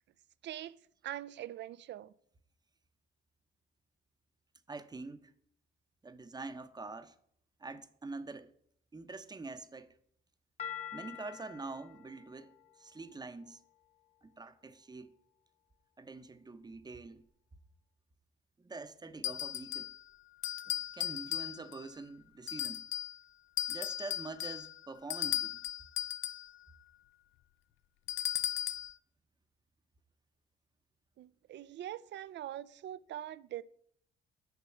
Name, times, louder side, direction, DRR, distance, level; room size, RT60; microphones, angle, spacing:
voice 1, 0.4-0.8 1.0-2.1 31.2-33.6, right 12 dB, 65° right, 0.5 m, -43 dB
voice 2, 4.7-5.3 6.0-7.1 7.6-8.5 8.9-9.9 10.9-13.6 14.2-15.1 16.0-17.2 18.6-19.9 20.7-22.8 23.7-25.6, right 3 dB, 20° right, 0.7 m, -45 dB
sound 1, 10.6-13.8, left 9 dB, 30° left, 0.9 m, -47 dB
sound 2, 19.2-20.0 20.4-21.9 22.5-23.2 23.6-26.5 28.1-28.9, left 11 dB, 80° left, 0.4 m, -36 dB
7.2 x 5.4 x 7.1 m
cardioid pair, 90°, 20 cm